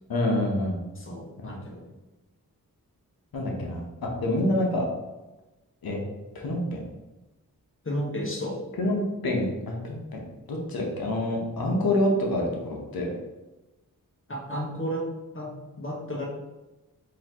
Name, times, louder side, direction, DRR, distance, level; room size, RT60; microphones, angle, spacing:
voice 1, 0.1-0.8 1.4-1.6 3.3-4.9 5.8-6.0 6.3-6.8 8.8-10.2 10.5-13.1, left 1 dB, 75° left, 0 dB, 1.0 m, -27 dB
voice 2, 1.0-1.9 7.8-8.6 14.3-15.1 15.3-16.3, equal, 35° left, -1 dB, 1.1 m, -33 dB
3.9 x 2.9 x 2.9 m, 1.1 s
cardioid pair, 40°, 36 cm